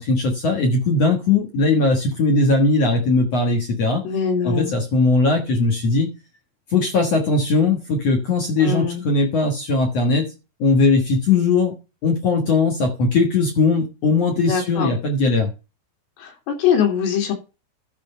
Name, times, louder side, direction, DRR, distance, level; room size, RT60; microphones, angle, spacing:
voice 1, 0.0-4.0 4.4-6.1 6.7-10.3 10.6-11.7 12.0-15.5, left 3 dB, 60° left, 1.7 m, -19 dB
voice 2, 4.0-4.7 8.6-9.0 14.4-14.9 16.2-17.3, left 7 dB, 85° left, 4.8 m, -22 dB
12.5 x 4.5 x 5.5 m
omnidirectional pair, 4.9 m